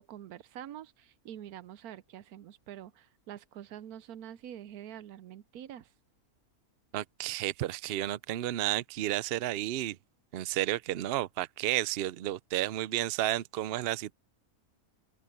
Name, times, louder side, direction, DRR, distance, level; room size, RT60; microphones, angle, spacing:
voice 1, 0.0-5.9, right 10 dB, 85° right, 1.2 m, -46 dB
voice 2, 6.9-10.0 10.3-14.1, right 14 dB, 65° right, 0.6 m, -32 dB
open air
omnidirectional pair, 1.5 m